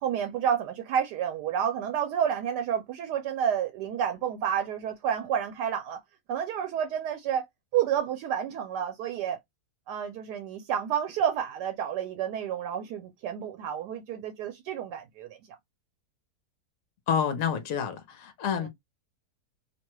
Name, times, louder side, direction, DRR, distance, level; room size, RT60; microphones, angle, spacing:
voice 1, 0.0-6.0 6.3-7.5 7.7-9.4 9.9-15.4 18.5-18.7, right 9 dB, 90° right, 1.2 m, -30 dB
voice 2, 17.1-18.7, left 7 dB, 65° left, 1.0 m, -28 dB
2.8 x 2.2 x 2.9 m
omnidirectional pair, 1.7 m